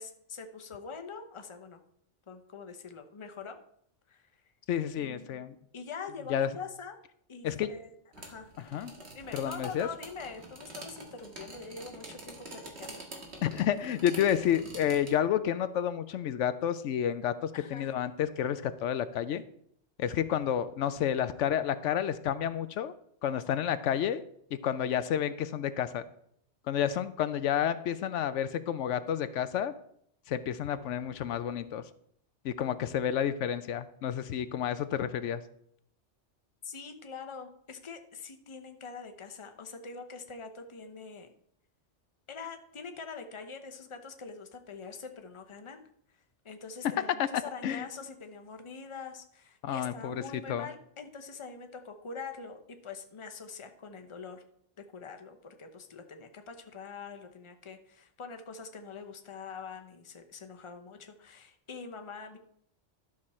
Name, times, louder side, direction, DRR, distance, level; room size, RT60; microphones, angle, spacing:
voice 1, 0.0-1.8 2.3-3.6 4.1-4.3 5.0-5.5 5.7-7.0 7.3-8.5 9.1-13.0 17.5-17.9 36.6-41.3 42.3-45.8 46.4-54.4 54.8-62.4, left 5 dB, 30° left, 6 dB, 0.8 m, -44 dB
voice 2, 4.7-5.5 6.3-6.5 7.4-7.7 8.7-8.9 9.3-9.9 13.4-19.4 20.0-22.9 23.2-24.2 24.6-26.0 26.7-29.7 30.3-31.8 32.4-35.4 47.2-47.3 47.6-47.9 49.6-50.2 50.5-50.7, left 9 dB, 80° left, 12 dB, 0.9 m, -30 dB
sound 1, 8.1-15.2, right 2 dB, 60° right, 1.9 m, -47 dB
11.5 x 6.3 x 4.2 m, 0.69 s
omnidirectional pair, 1.2 m